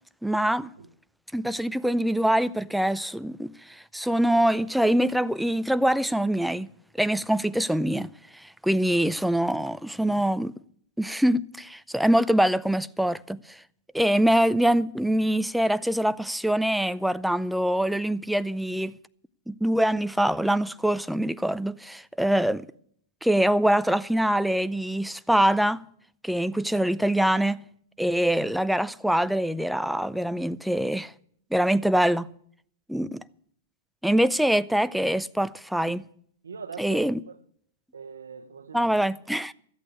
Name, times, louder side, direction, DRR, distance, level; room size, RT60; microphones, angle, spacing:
voice 1, 0.2-0.7 1.3-6.7 7.0-10.5 11.0-13.6 13.9-19.0 19.5-22.7 23.2-25.8 26.2-27.6 28.0-31.1 31.5-32.3 32.9-33.2 34.0-36.0 36.8-37.2 38.7-39.5, right 1 dB, ahead, 0.5 m, -24 dB
voice 2, 36.4-37.4 37.9-38.9, right 5 dB, 90° right, 1.2 m, -42 dB
13.5 x 8.4 x 8.8 m
hypercardioid pair, 115°, 0 cm